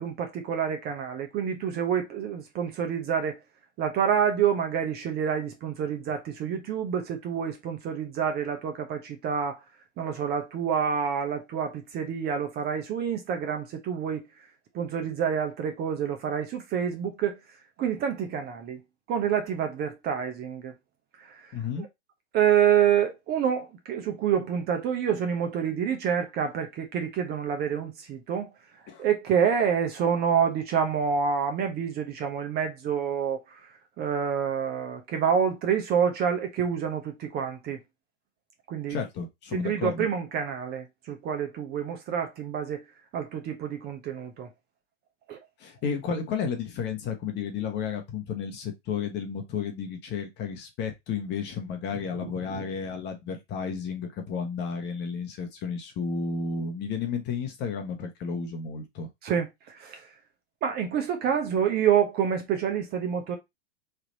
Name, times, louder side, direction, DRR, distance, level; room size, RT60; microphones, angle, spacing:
voice 1, 0.0-3.4 3.8-9.6 10.0-14.2 14.7-17.4 17.8-18.8 19.1-20.7 21.2-21.9 22.3-28.5 29.0-33.7 34.0-37.8 38.7-39.0 39.5-42.8 43.1-44.5 45.3-45.4 52.2-52.6 59.2-60.1 60.6-63.4, right 8 dB, 25° right, 0.8 m, -27 dB
voice 2, 21.5-21.8 28.9-29.0 38.9-40.1 45.6-59.1, left 6 dB, 30° left, 1.1 m, -32 dB
3.4 x 2.9 x 3.9 m
hypercardioid pair, 125°, 36 cm